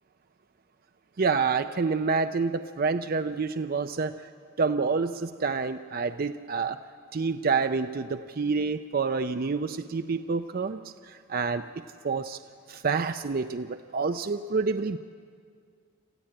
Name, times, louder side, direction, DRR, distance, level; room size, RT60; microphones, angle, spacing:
voice 1, 1.2-4.3 4.6-6.8 7.1-10.8 11.1-11.7 12.0-12.4 12.7-15.0, right 4 dB, 45° right, 9 dB, 0.5 m, -28 dB
27.5 x 14.5 x 8.9 m, 2.1 s
head